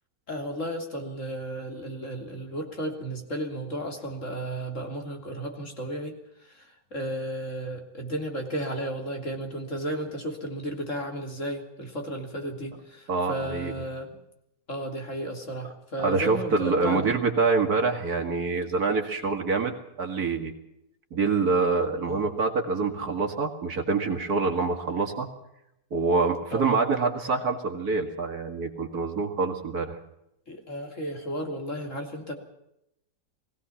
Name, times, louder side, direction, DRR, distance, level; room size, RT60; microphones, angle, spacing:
voice 1, 0.3-6.2 6.4-14.2 14.7-17.1 22.1-22.3 26.5-26.8 30.5-32.3, right 1 dB, 40° left, 3 dB, 3.5 m, -34 dB
voice 2, 13.1-13.7 16.0-20.5 21.1-25.3 25.9-30.0, right 4 dB, 55° right, 5 dB, 2.6 m, -26 dB
20.5 x 17.5 x 7.2 m, 0.82 s
omnidirectional pair, 1.9 m